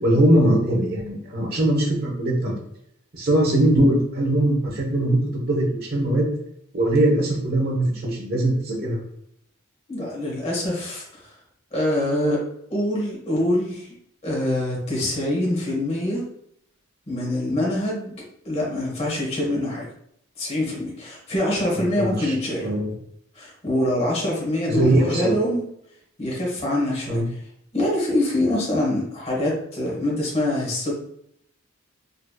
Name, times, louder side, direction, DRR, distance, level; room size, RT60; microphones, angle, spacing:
voice 1, 0.0-2.5 3.1-6.3 6.7-9.0 21.7-22.9 24.7-25.4 27.1-27.2, right 1 dB, 50° right, -1 dB, 1.1 m, -21 dB
voice 2, 9.9-11.4 11.7-12.4 12.7-13.9 14.2-16.3 17.1-19.9 20.4-22.7 23.3-25.6 26.2-27.4 27.7-30.9, left 1 dB, 30° left, -3 dB, 1.2 m, -25 dB
3.9 x 3.1 x 2.3 m, 0.72 s
head